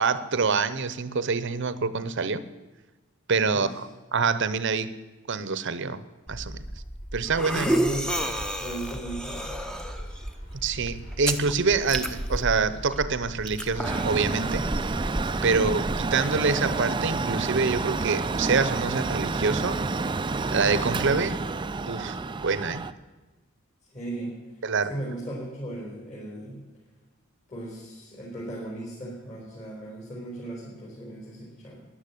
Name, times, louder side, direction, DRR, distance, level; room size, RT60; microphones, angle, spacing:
voice 1, 0.0-2.4 3.3-4.9 5.3-6.0 6.3-6.6 7.1-7.7 10.6-14.6 15.4-15.8 16.1-19.8 20.5-21.4 21.9-22.8 24.6-24.9, right 4 dB, 60° right, 15 dB, 0.8 m, -26 dB
sound 1, 6.3-15.8, right 1 dB, 5° left, 0.8 m, -32 dB
voice 2, 7.6-9.8 15.5-15.8 23.9-24.4 24.9-26.6 27.5-31.8, right 1 dB, 35° left, -5 dB, 4.3 m, -37 dB
sound 2, 8.9-14.7, equal, 75° left, 7.2 m, -50 dB
Mechanical fan, 13.8-22.9, right 3 dB, 20° right, 0.4 m, -29 dB
13.5 x 11.0 x 8.4 m, 1.2 s
head